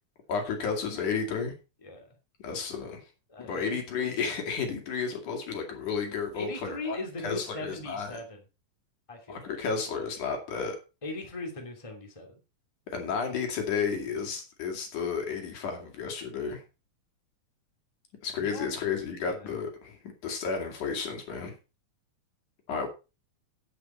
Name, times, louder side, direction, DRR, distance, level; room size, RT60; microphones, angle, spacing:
voice 1, 0.3-1.5 2.4-3.0 3.4-7.0 7.2-8.2 9.3-10.8 12.9-16.6 18.2-20.0 20.2-21.5 22.7-22.9, left 5 dB, 75° left, 3 dB, 3.8 m, -32 dB
voice 2, 3.3-3.7 6.3-8.4 9.1-9.5 11.0-12.4 18.4-18.7 19.2-19.5, left 2 dB, 10° left, 2 dB, 2.4 m, -39 dB
10.0 x 9.1 x 4.4 m, 0.30 s
omnidirectional pair, 3.6 m